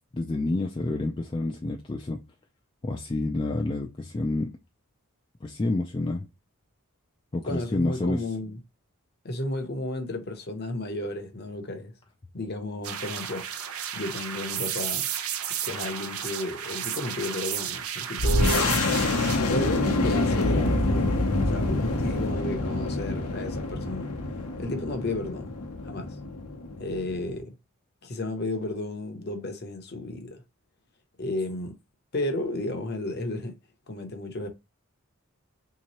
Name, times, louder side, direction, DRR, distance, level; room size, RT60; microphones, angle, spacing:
voice 1, 0.1-2.2 2.8-4.5 5.4-6.3 7.3-8.3, left 2 dB, 20° left, 0.3 m, -28 dB
voice 2, 7.5-8.6 9.2-11.9 12.3-13.5 13.9-15.1 15.6-18.7 19.5-24.1 24.6-25.5 25.8-26.2 26.8-27.5 28.0-30.4 31.2-31.7 32.1-33.5 33.9-34.5, left 1 dB, 45° left, 0.7 m, -33 dB
sound 1, 12.8-19.4, right 9 dB, 75° right, 0.5 m, -33 dB
sound 2, 18.2-27.4, left 2 dB, 80° left, 0.8 m, -26 dB
3.6 x 2.9 x 2.9 m
head